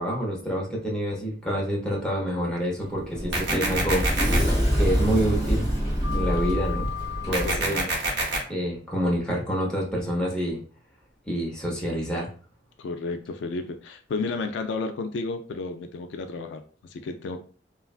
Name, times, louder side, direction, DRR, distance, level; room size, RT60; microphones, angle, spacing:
voice 1, 0.0-4.0 4.7-5.7 6.1-6.9 7.3-7.9 8.5-10.6 11.3-12.3, equal, 5° left, -4 dB, 0.8 m, -27 dB
Sliding door, 2.8-7.6, equal, 25° right, 0.9 m, -25 dB
sound 1, 3.3-4.4 7.3-8.4, right 2 dB, 70° right, 0.8 m, -26 dB
voice 2, 7.4-7.8 12.8-16.6 16.9-17.4, left 3 dB, 85° left, 8 dB, 0.3 m, -32 dB
3.1 x 2.3 x 2.4 m, 0.41 s
head